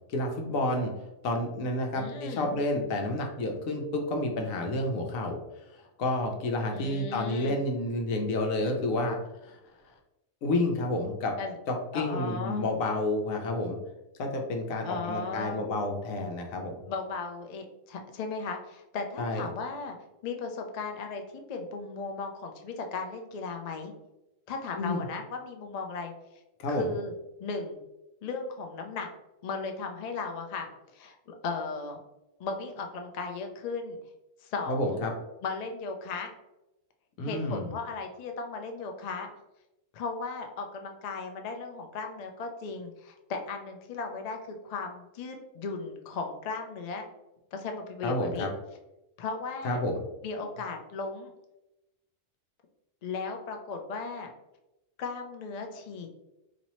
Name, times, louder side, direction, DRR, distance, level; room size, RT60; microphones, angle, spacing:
voice 1, 0.1-0.9 1.2-5.4 6.0-9.2 9.4-9.6 10.4-11.3 11.7-13.8 14.2-16.7 19.2-19.4 24.7-25.0 26.6-26.9 34.7-35.1 37.2-37.7 48.0-48.5 49.6-49.9, left 2 dB, 85° left, 3 dB, 1.1 m, -30 dB
voice 2, 1.9-2.5 6.7-7.6 11.4-11.6 11.9-12.7 14.8-15.6 16.9-20.0 20.2-23.9 24.5-26.1 26.7-27.1 27.4-27.8 28.2-29.1 29.4-30.7 30.9-32.0 32.4-34.0 34.4-35.0 35.4-36.3 37.3-39.3 39.9-47.0 47.5-48.5 49.2-49.8 50.2-51.3 53.0-54.3 55.0-56.1, left 4 dB, 65° left, 3 dB, 0.4 m, -36 dB
4.1 x 2.7 x 3.0 m, 0.95 s
omnidirectional pair, 1.4 m